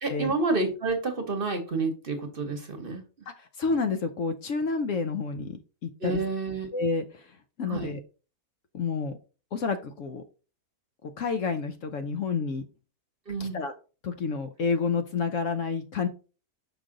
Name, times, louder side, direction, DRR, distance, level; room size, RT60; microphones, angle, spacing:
voice 1, 0.0-3.0 6.0-6.7 7.7-7.9 13.3-13.6, right 3 dB, 40° right, 6 dB, 1.0 m, -29 dB
voice 2, 3.4-6.2 6.7-8.0 8.7-9.2 9.5-10.2 11.0-12.7 13.4-13.7 14.0-16.1, left 4 dB, 65° left, 8 dB, 0.9 m, -29 dB
6.1 x 5.0 x 3.7 m, 0.35 s
omnidirectional pair, 1.6 m